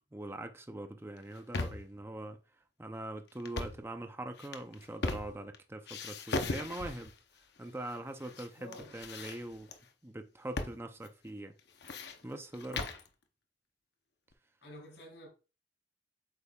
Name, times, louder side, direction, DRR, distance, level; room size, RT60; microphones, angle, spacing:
voice 1, 0.1-2.4 2.8-7.1 7.6-9.7 10.0-11.5 12.2-12.9, right 1 dB, 15° right, 0.6 m, -42 dB
sound 1, 1.2-2.0 3.4-3.9 4.4-5.6 5.9-7.2 7.9-8.5 8.7-9.8 10.6-10.8 11.0-11.1 11.6-13.1, left 3 dB, 60° left, 0.8 m, -38 dB
voice 2, 8.6-9.0 14.6-15.3, equal, 85° left, 3.7 m, -50 dB
8.2 x 5.2 x 2.4 m
head